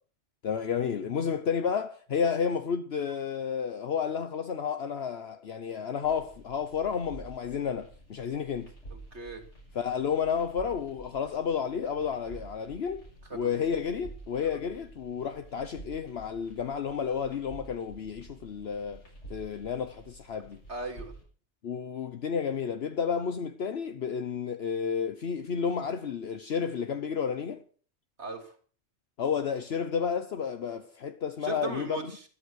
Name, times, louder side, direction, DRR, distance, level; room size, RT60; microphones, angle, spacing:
voice 1, 0.4-8.7 9.7-13.0 13.3-19.0 19.3-20.6 21.6-27.6 29.2-32.0, left 7 dB, 65° left, 1.1 m, -31 dB
sound 1, 6.0-21.2, right 2 dB, 85° left, 7.7 m, -50 dB
voice 2, 9.1-9.4 13.3-13.7 20.7-21.1 28.2-28.5 31.4-32.2, right 3 dB, 70° right, 3.5 m, -37 dB
13.5 x 13.0 x 6.4 m
omnidirectional pair, 1.2 m